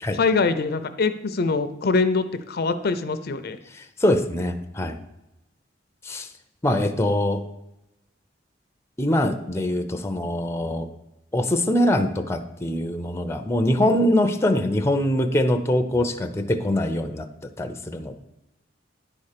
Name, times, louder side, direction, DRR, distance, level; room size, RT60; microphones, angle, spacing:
voice 1, 0.1-3.6, left 4 dB, 55° left, 10 dB, 0.5 m, -23 dB
voice 2, 3.7-5.0 6.0-6.3 6.6-7.4 9.0-10.9 11.3-17.3 17.6-18.1, left 1 dB, 15° left, 6 dB, 0.6 m, -23 dB
10.0 x 4.3 x 6.7 m, 0.91 s
head